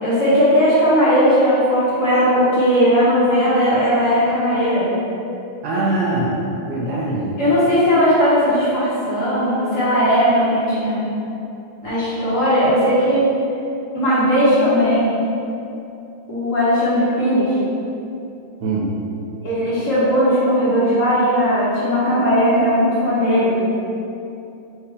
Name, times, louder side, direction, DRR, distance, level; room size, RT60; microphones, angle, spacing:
voice 1, 0.0-4.9 7.4-11.0 11.8-13.2 13.9-15.1 16.3-17.5 19.4-23.6, equal, 45° left, -11 dB, 1.4 m, -17 dB
voice 2, 5.6-6.4 6.6-7.4 18.6-18.9, right 2 dB, 70° right, -5 dB, 0.9 m, -22 dB
4.6 x 2.8 x 3.3 m, 2.7 s
omnidirectional pair, 2.3 m